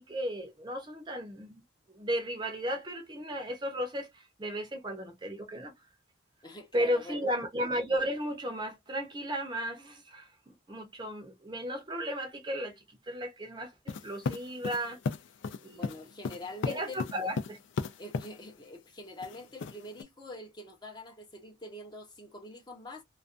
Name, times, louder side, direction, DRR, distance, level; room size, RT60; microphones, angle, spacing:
voice 1, 0.0-1.6 1.9-5.7 6.7-12.8 13.1-15.0 15.6-15.9 16.7-17.6, equal, 20° right, 0.6 m, -34 dB
voice 2, 6.4-7.3 15.8-17.0 18.0-23.0, left 1 dB, 20° left, 0.6 m, -45 dB
sound 1, 13.9-18.3 19.2-20.0, left 5 dB, 65° left, 0.3 m, -35 dB
2.4 x 2.2 x 2.4 m
head